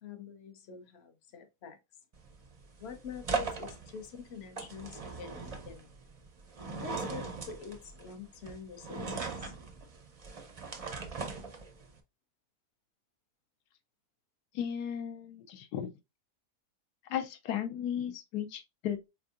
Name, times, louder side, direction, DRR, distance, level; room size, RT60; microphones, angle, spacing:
voice 1, 0.0-1.8 2.8-6.0 6.8-9.5, left 7 dB, 55° left, 0.8 m, -46 dB
sound 1, 2.1-12.0, right 4 dB, 50° right, 0.4 m, -40 dB
voice 2, 14.5-15.9 17.1-19.1, left 9 dB, 85° left, 1.2 m, -35 dB
4.5 x 3.5 x 2.4 m
omnidirectional pair, 1.7 m